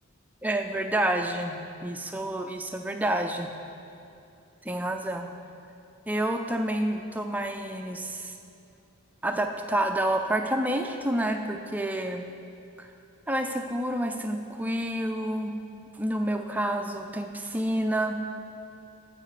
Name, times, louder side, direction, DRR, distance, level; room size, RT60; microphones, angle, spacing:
voice 1, 0.4-3.5 4.6-5.3 6.1-8.3 9.2-12.3 12.8-12.9 13.3-15.6 16.0-18.2, right 1 dB, 5° right, 4 dB, 0.4 m, -29 dB
9.0 x 7.4 x 4.9 m, 2.6 s
head